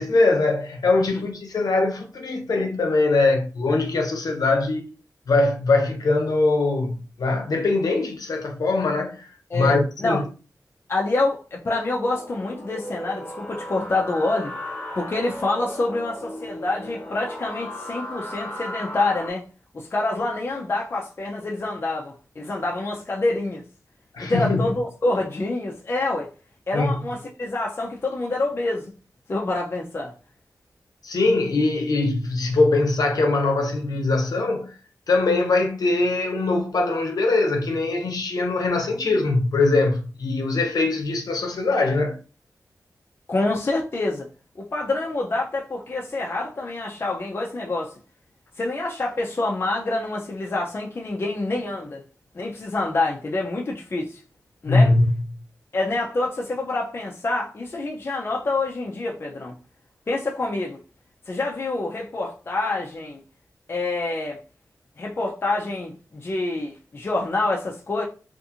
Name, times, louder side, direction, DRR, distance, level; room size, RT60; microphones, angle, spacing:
voice 1, 0.0-4.9 5.3-10.2 24.1-24.7 26.7-27.0 31.0-34.7 35.1-42.2 54.7-55.1, left 3 dB, 80° left, 0.7 m, -22 dB
voice 2, 9.5-10.2 10.9-14.5 15.0-19.4 19.7-23.6 24.2-26.3 26.7-28.9 29.3-30.1 43.3-44.3 44.6-47.9 48.6-52.0 52.3-54.2 54.6-54.9 55.7-59.5 60.1-60.8 61.3-63.2 63.7-64.4 65.0-68.0, left 2 dB, 40° left, 0.4 m, -26 dB
sound 1, 12.1-19.3, left 1 dB, 20° left, 1.1 m, -36 dB
2.5 x 2.5 x 2.7 m
wide cardioid pair, 125°, 6 cm